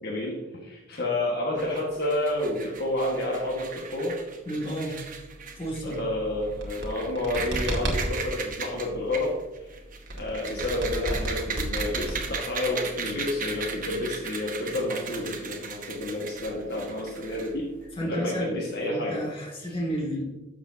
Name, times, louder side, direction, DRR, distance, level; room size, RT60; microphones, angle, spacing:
voice 1, 0.0-4.2 4.9-5.0 5.8-9.7 10.2-17.7 18.0-19.2 19.7-19.8, left 1 dB, 55° left, -2 dB, 1.7 m, -30 dB
sound 1, 1.6-17.9, right 5 dB, 40° right, 1.1 m, -38 dB
voice 2, 4.5-5.0 5.6-6.0 17.9-20.2, equal, 30° left, -2 dB, 2.5 m, -31 dB
sound 2, 6.5-8.3 10.1-12.7, right 1 dB, 60° right, 2.1 m, -31 dB
12.0 x 7.1 x 2.8 m, 1.1 s
head